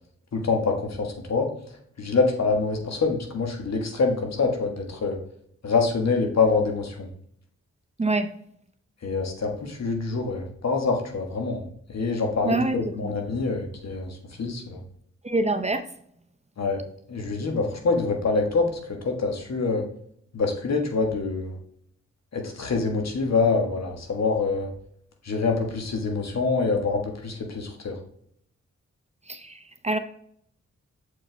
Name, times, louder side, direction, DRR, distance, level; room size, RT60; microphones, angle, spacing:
voice 1, 0.3-1.5 2.0-5.2 5.6-7.1 9.0-11.6 11.9-14.8 16.6-16.8 17.1-18.7 19.0-19.8 20.3-21.6 22.3-24.7 25.2-28.0, left 4 dB, 60° left, 3 dB, 1.6 m, -25 dB
voice 2, 8.0-8.3 12.4-13.2 15.2-15.8 29.3-30.0, right 2 dB, 20° right, 8 dB, 0.6 m, -26 dB
7.2 x 4.8 x 3.4 m, 0.66 s
cardioid pair, 50°, 30 cm